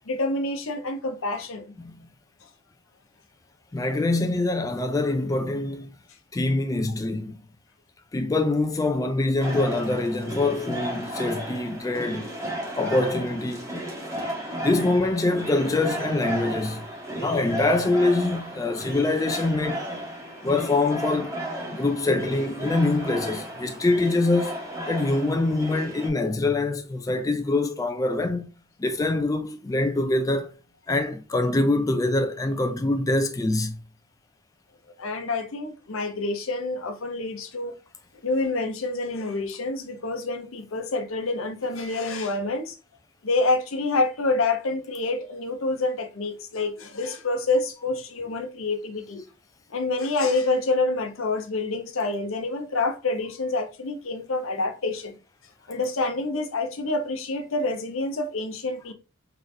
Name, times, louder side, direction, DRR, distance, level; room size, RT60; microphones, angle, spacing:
voice 1, 0.1-1.7 35.0-37.7 38.2-42.8 43.2-49.2 49.7-55.1 55.7-58.9, left 3 dB, 75° left, 0.8 m, -27 dB
voice 2, 3.7-5.9 6.3-7.4 8.1-12.3 12.7-13.7 14.6-16.8 17.2-19.8 20.4-21.4 21.7-24.6 24.9-28.5 28.8-30.5 30.9-33.8, left 2 dB, 15° left, 0.3 m, -24 dB
sound 1, 9.4-26.1, right 1 dB, 15° right, 1.5 m, -34 dB
3.8 x 3.3 x 2.6 m
head